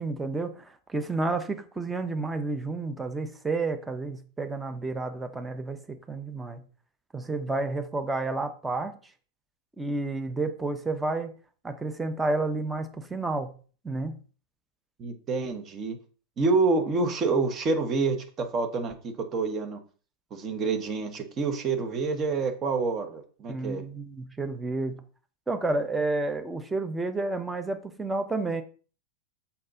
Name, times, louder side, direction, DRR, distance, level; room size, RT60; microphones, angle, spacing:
voice 1, 0.0-6.6 7.1-8.9 9.8-11.3 11.6-13.5 13.8-14.2 23.5-25.0 25.5-28.6, right 3 dB, 10° right, 8 dB, 1.0 m, -30 dB
voice 2, 15.0-16.0 16.4-19.8 20.3-23.8, right 4 dB, 30° right, 6 dB, 1.4 m, -27 dB
6.5 x 5.8 x 3.8 m, 0.39 s
figure-of-eight pair, 90°, 0 cm